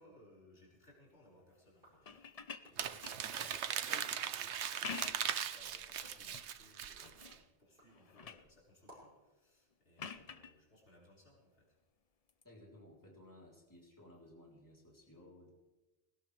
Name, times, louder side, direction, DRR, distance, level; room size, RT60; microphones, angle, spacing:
voice 1, 0.0-11.7, left 1 dB, 85° left, -5 dB, 5.4 m, -63 dB
sound 1, 1.7-4.0 4.3-4.8 5.3-9.3, equal, 50° right, 6.8 m, -66 dB
sound 2, 1.9-3.7 4.6-5.4 5.9-6.5 7.0-7.5 7.8-8.5 10.0-10.5 12.3-12.4, left 6 dB, 40° left, 0.7 m, -48 dB
Crumpling crinkling, 2.8-7.3, right 9 dB, 80° right, 1.0 m, -39 dB
voice 2, 12.4-15.5, left 1 dB, 15° left, -3 dB, 3.6 m, -58 dB
20.5 x 18.0 x 3.4 m, 1.1 s
omnidirectional pair, 1.1 m